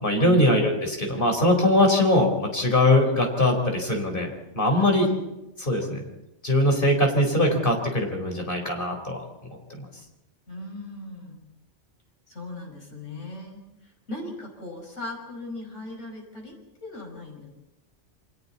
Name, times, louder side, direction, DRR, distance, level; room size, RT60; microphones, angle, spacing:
voice 1, 0.0-4.3 4.5-5.1 5.6-6.0 6.4-9.2 9.7-9.9, left 1 dB, 45° left, 2 dB, 4.5 m, -21 dB
voice 2, 4.7-5.2 10.5-11.4 12.3-16.5 16.8-17.5, left 1 dB, 85° left, 0 dB, 6.1 m, -38 dB
29.0 x 24.0 x 4.2 m, 0.95 s
omnidirectional pair, 1.2 m